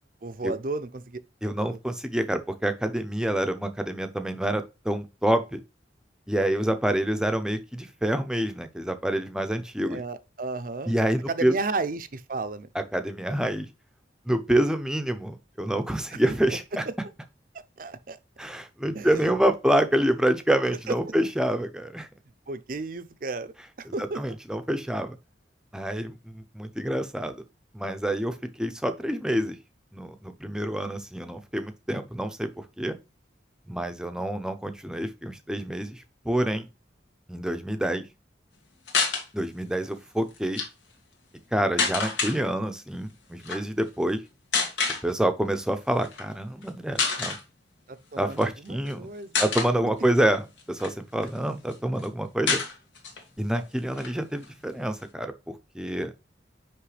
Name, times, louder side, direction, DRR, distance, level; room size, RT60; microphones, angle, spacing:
voice 1, 0.2-1.2 1.5-1.8 6.4-6.7 9.8-10.9 11.3-12.7 16.1-16.2 16.5-16.8 17.8-18.2 18.9-19.3 20.9-21.2 22.5-24.2 47.9-49.4, right 3 dB, 50° right, 0.6 m, -34 dB
voice 2, 1.4-5.6 6.3-10.0 10.9-11.6 12.7-13.7 14.3-16.8 18.4-22.1 24.0-25.2 25.7-27.4 27.7-29.6 29.9-33.0 33.7-36.7 37.3-38.1 39.3-40.6 41.5-44.2 45.0-47.4 48.2-49.1 49.4-52.6 53.4-56.1, right 1 dB, 5° right, 0.6 m, -27 dB
sound 1, 38.9-39.2 40.4-40.7 41.8-42.4 43.4-43.6 44.5-45.0 46.0-46.2 46.6-46.7 47.0-47.4 48.3-48.9 49.3-49.7 50.3-51.4 51.7-51.8 52.0-52.1 52.5-53.2 53.5-53.6 53.9-55.0, left 4 dB, 85° left, 2.0 m, -27 dB
9.7 x 3.3 x 3.3 m
head